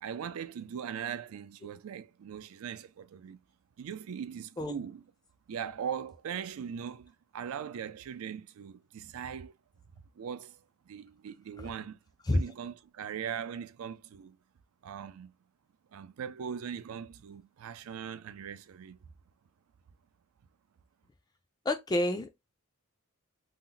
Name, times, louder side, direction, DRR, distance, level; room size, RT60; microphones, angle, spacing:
voice 1, 0.0-3.4 3.8-5.1 5.5-9.5 10.2-10.6 10.9-12.0 12.3-14.4 14.8-15.3 15.9-19.0, right 8 dB, 80° right, 0.4 m, -40 dB
voice 2, 21.7-22.3, left 1 dB, 20° left, 0.3 m, -28 dB
2.7 x 2.1 x 3.8 m
head